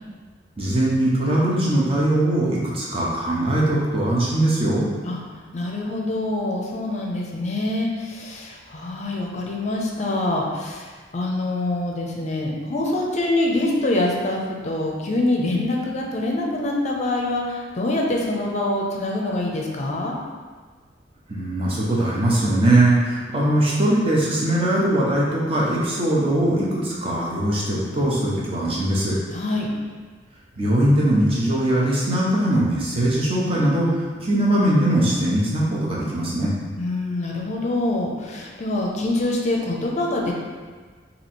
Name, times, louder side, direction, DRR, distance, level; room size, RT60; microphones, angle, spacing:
voice 1, 0.6-4.9 21.3-29.1 30.6-33.9 34.2-36.5, right 1 dB, 30° right, -5 dB, 0.8 m, -21 dB
voice 2, 5.5-20.2 29.3-29.7 36.8-40.3, left 2 dB, 40° left, -1 dB, 0.5 m, -25 dB
3.1 x 2.8 x 4.3 m, 1.5 s
head